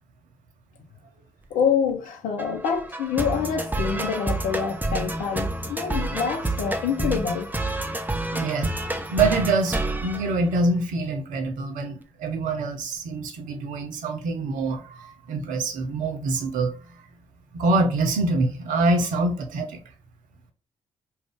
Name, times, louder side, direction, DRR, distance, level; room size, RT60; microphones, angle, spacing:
voice 1, 1.5-7.5, left 7 dB, 70° left, 0.6 m, -26 dB
sound 1, 2.4-11.0, right 2 dB, 15° right, 0.6 m, -29 dB
voice 2, 8.3-8.7 9.1-16.8 17.5-19.8, right 2 dB, 75° right, 0.6 m, -25 dB
2.5 x 2.2 x 3.5 m
hypercardioid pair, 40°, 14 cm